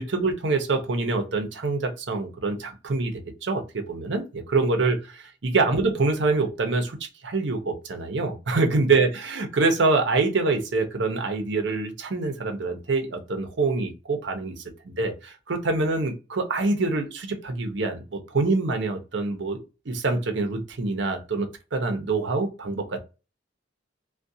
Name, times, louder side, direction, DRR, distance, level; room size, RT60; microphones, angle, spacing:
voice 1, 0.0-3.1 3.4-7.0 7.2-23.0, right 3 dB, 70° right, 0.6 m, -25 dB
2.4 x 2.2 x 2.6 m
head